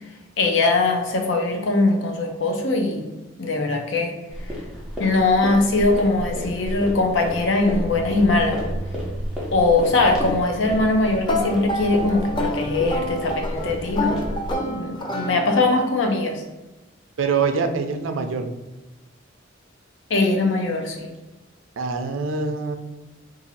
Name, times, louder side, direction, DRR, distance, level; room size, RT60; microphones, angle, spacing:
voice 1, 0.4-3.0 3.4-4.1 5.0-8.6 9.5-14.2 14.7-16.4 20.1-21.1, left 3 dB, 65° left, 3 dB, 0.6 m, -21 dB
sound 1, 4.3-14.6, equal, 5° right, 0.8 m, -31 dB
sound 2, 11.3-15.9, left 1 dB, 25° left, 0.4 m, -29 dB
voice 2, 17.2-18.5 21.8-22.7, right 5 dB, 80° right, 7 dB, 0.4 m, -24 dB
2.7 x 2.5 x 4.1 m, 1.1 s
head